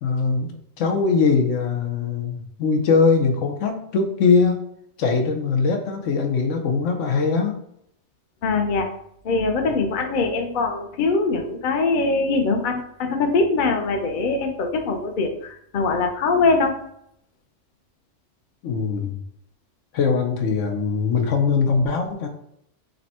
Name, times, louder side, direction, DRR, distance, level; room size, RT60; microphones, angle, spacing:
voice 1, 0.0-4.7 5.0-7.6 18.6-19.2 19.9-22.3, left 5 dB, 85° left, 4 dB, 1.1 m, -21 dB
voice 2, 8.4-8.9 9.2-16.7, left 3 dB, 50° left, 4 dB, 0.7 m, -22 dB
5.3 x 2.2 x 4.2 m, 0.72 s
omnidirectional pair, 1.3 m